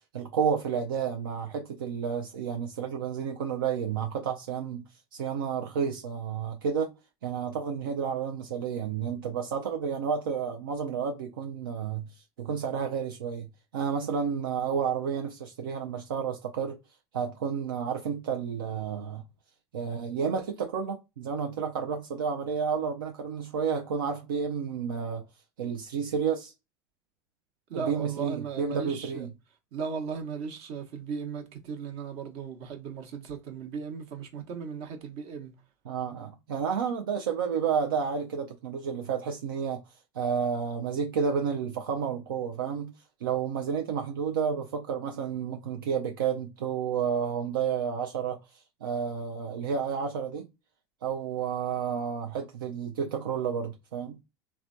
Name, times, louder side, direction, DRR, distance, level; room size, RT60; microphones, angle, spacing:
voice 1, 0.1-4.8 5.1-6.9 7.2-16.8 17.1-19.2 19.7-25.2 25.6-26.5 27.7-29.3 35.9-39.8 40.1-42.9 43.2-50.5 51.0-54.2, right 6 dB, 85° right, 0.4 m, -31 dB
voice 2, 27.7-29.3 29.7-35.5, right 6 dB, 60° right, 0.9 m, -37 dB
3.2 x 2.2 x 2.5 m
hypercardioid pair, 80°, 11 cm